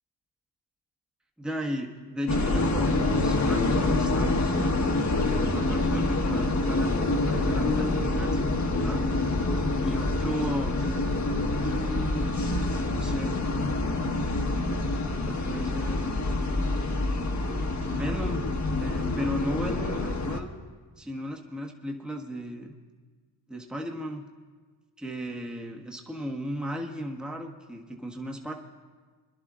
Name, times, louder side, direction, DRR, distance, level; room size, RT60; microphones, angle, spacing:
voice 1, 1.4-4.5 5.2-9.0 9.8-10.7 11.5-12.3 12.9-13.4 14.7-15.0 15.2-16.1 17.9-18.5 18.8-20.5 21.0-22.7 23.5-24.3 25.0-28.5, equal, ahead, 1 dB, 1.2 m, -35 dB
sound 1, 2.3-20.4, left 2 dB, 35° left, 1.3 m, -26 dB
27.0 x 11.0 x 2.4 m, 1.4 s
supercardioid pair, 55°, 46 cm